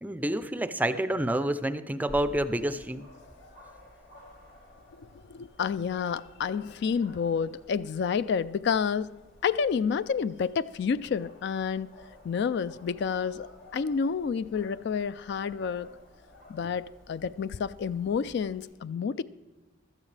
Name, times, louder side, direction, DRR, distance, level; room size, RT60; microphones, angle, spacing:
voice 1, 0.0-3.1, right 1 dB, 10° right, 0.4 m, -28 dB
Dog, 2.1-18.6, left 1 dB, 90° left, 4.8 m, -53 dB
voice 2, 5.3-9.2 9.4-11.9 12.2-15.9 16.5-19.2, left 6 dB, 60° left, 0.3 m, -29 dB
16.0 x 13.0 x 3.3 m
head